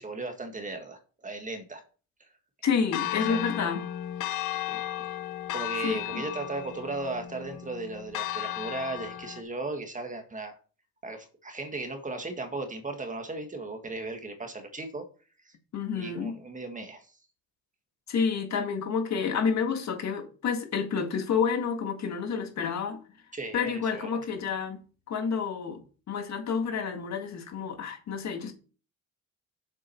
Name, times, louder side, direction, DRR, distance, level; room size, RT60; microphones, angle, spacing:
voice 1, 0.0-1.8 3.3-3.4 4.7-5.1 5.5-10.6 11.0-15.0 15.4-15.5 15.9-17.1 23.3-24.2, right 2 dB, 25° right, 1.7 m, -36 dB
voice 2, 2.6-3.9 5.8-6.2 15.7-16.4 18.1-23.0 23.5-24.8 25.1-25.8 26.1-28.5, left 6 dB, 65° left, 1.9 m, -29 dB
Church bell, 2.9-9.4, left 12 dB, 90° left, 0.8 m, -34 dB
7.3 x 6.1 x 4.5 m
cardioid pair, 90°, 30 cm